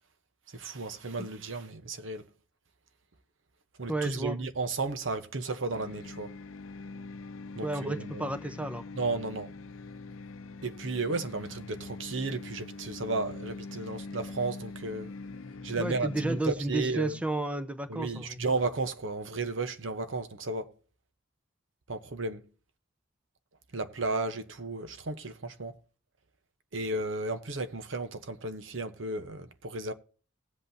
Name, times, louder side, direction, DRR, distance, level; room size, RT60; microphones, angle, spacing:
voice 1, 0.5-2.3 3.8-6.3 7.6-8.3 8.9-9.5 10.6-15.1 15.6-17.2 17.9-20.7 21.9-22.5 23.7-25.7 26.7-29.9, right 3 dB, 70° right, 0.9 m, -34 dB
voice 2, 3.9-4.4 7.6-8.8 15.8-18.4, right 2 dB, 5° right, 0.7 m, -32 dB
sound 1, 5.7-16.4, left 3 dB, 80° left, 0.6 m, -43 dB
18.5 x 8.0 x 2.7 m
head